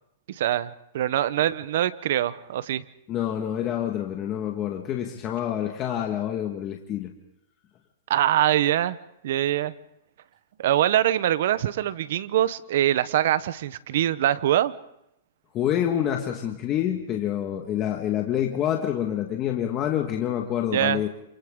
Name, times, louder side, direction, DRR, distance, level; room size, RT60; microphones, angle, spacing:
voice 1, 0.3-2.8 8.1-9.0 9.2-9.7 10.6-14.7 20.7-21.0, right 12 dB, 60° right, 16 dB, 0.9 m, -23 dB
voice 2, 3.1-7.1 15.5-21.1, left 10 dB, 25° left, 2 dB, 1.6 m, -27 dB
28.0 x 28.0 x 3.8 m, 0.79 s
hypercardioid pair, 160°, 0 cm